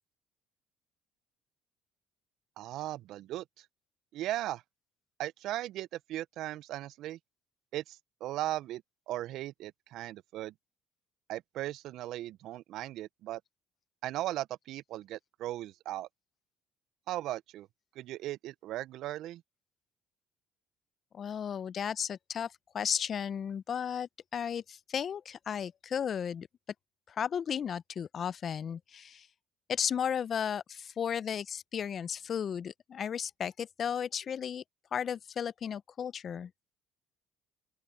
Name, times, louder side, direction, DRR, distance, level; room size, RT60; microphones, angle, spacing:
voice 1, 2.6-3.6 4.1-4.6 5.2-7.2 7.7-10.5 11.3-13.4 14.0-16.1 17.1-17.7 18.0-19.4, right 14 dB, 70° right, 0.3 m, -37 dB
voice 2, 21.1-26.5 27.1-29.3 29.7-34.6 34.9-36.5, left 8 dB, 45° left, 0.3 m, -34 dB
open air
cardioid pair, 115°, 0 cm